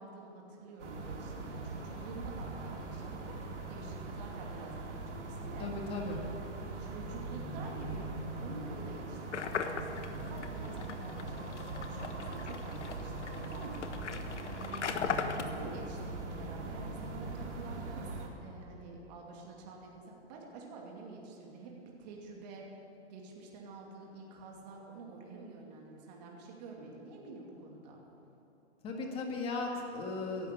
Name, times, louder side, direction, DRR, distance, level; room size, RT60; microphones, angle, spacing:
voice 1, 0.0-3.4 3.7-5.7 6.8-11.5 11.8-15.0 15.3-18.1 18.4-22.7 23.1-28.0, right 3 dB, 35° right, -1 dB, 2.5 m, -48 dB
sound 1, 0.8-18.3, right 2 dB, 80° right, 3.3 m, -41 dB
voice 2, 5.6-6.2 28.8-30.5, left 3 dB, 15° left, 1 dB, 1.7 m, -37 dB
sound 2, 9.3-15.4, left 6 dB, 85° left, 1.4 m, -38 dB
15.5 x 11.5 x 8.3 m, 3.0 s
hypercardioid pair, 160°, 35 cm